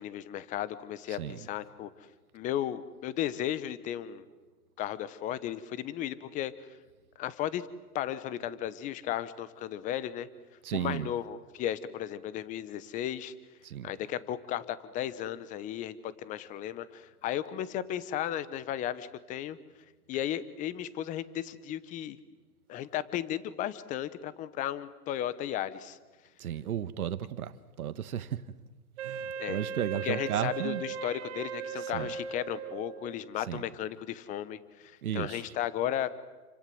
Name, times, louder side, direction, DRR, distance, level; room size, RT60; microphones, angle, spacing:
voice 1, 0.0-1.9 2.3-4.2 4.8-6.5 7.2-7.7 7.9-10.3 10.7-13.3 13.8-19.6 20.1-22.2 22.7-26.0 29.4-29.6 30.0-36.1, left 11 dB, 15° left, 1.0 m, -35 dB
voice 2, 1.1-1.5 10.6-11.1 13.6-13.9 26.4-28.4 29.0-30.8 31.8-32.1 33.5-33.6 35.0-35.4, right 10 dB, 65° right, 1.6 m, -34 dB
Wind instrument woodwind instrument, 29.0-33.2, right 7 dB, 45° right, 2.1 m, -38 dB
29.5 x 25.5 x 7.8 m
hypercardioid pair, 140°, 46 cm